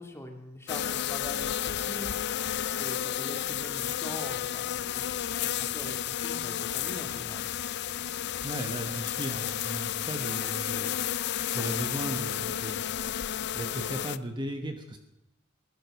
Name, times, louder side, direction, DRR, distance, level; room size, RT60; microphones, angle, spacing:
voice 1, 0.0-2.1 2.8-5.2 5.4-7.5, left 1 dB, 15° left, 3 dB, 2.0 m, -43 dB
sound 1, 0.7-14.2, left 10 dB, 55° left, 0.4 m, -32 dB
voice 2, 8.4-10.9 11.5-12.8 13.5-15.0, right 1 dB, 20° right, 5 dB, 1.2 m, -36 dB
19.0 x 11.0 x 6.4 m, 0.89 s
head